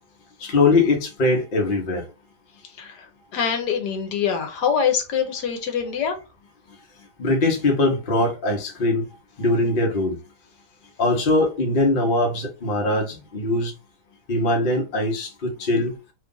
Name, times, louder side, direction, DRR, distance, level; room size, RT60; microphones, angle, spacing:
voice 1, 0.4-2.0 7.2-9.1 9.4-10.2 11.0-13.7 14.3-16.0, left 2 dB, 40° left, 0.9 m, -21 dB
voice 2, 2.6-6.2, left 7 dB, 75° left, 1.3 m, -25 dB
3.1 x 2.4 x 3.7 m
omnidirectional pair, 1.9 m